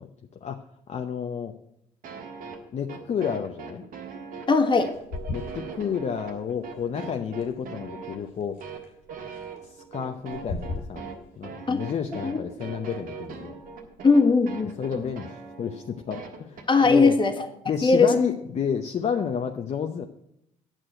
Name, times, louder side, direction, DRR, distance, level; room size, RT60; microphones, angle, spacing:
voice 1, 0.9-1.5 2.7-3.8 5.3-8.6 9.6-11.1 11.4-13.6 14.8-17.2 17.7-20.1, left 7 dB, 50° left, 4 dB, 0.8 m, -30 dB
sound 1, 2.0-16.9, right 5 dB, 70° right, 1.6 m, -40 dB
voice 2, 4.5-4.9 11.7-11.8 12.2-12.4 14.0-14.7 16.7-17.3 17.8-18.1, left 4 dB, 30° left, 6 dB, 1.5 m, -19 dB
sound 2, 4.9-15.2, left 3 dB, 85° left, 3.0 m, -42 dB
9.0 x 6.2 x 7.7 m, 0.79 s
supercardioid pair, 75°, 15 cm